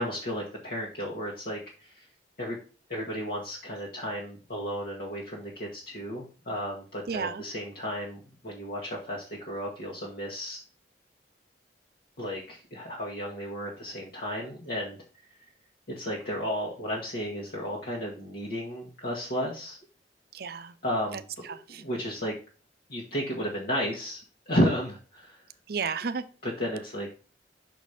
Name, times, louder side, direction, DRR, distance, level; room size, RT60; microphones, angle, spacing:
voice 1, 0.0-2.1 2.4-2.6 2.9-10.6 12.2-15.0 15.3-15.5 16.0-19.8 20.8-21.2 21.7-22.3 22.9-24.2 24.5-25.4 26.4-27.1, equal, 55° left, -3 dB, 1.4 m, -33 dB
voice 2, 7.1-7.4 20.3-20.7 21.1-21.8 25.7-26.2, right 5 dB, 55° right, 12 dB, 0.5 m, -33 dB
6.1 x 4.1 x 4.9 m, 0.37 s
head